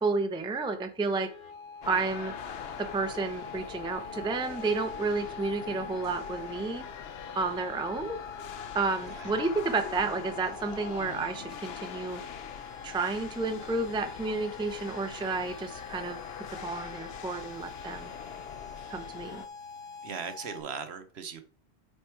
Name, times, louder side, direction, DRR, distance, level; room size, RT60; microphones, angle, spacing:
voice 1, 0.0-1.3 1.9-2.3 2.8-6.9 7.4-8.2 8.7-12.2 12.8-18.1 18.9-19.4, right 3 dB, 5° right, 0.5 m, -31 dB
sound 1, 1.1-20.6, left 4 dB, 80° left, 2.0 m, -45 dB
sound 2, 1.8-19.5, left 8 dB, 60° left, 0.8 m, -43 dB
voice 2, 20.0-21.4, right 6 dB, 60° right, 1.0 m, -39 dB
7.9 x 4.4 x 4.5 m
omnidirectional pair, 1.3 m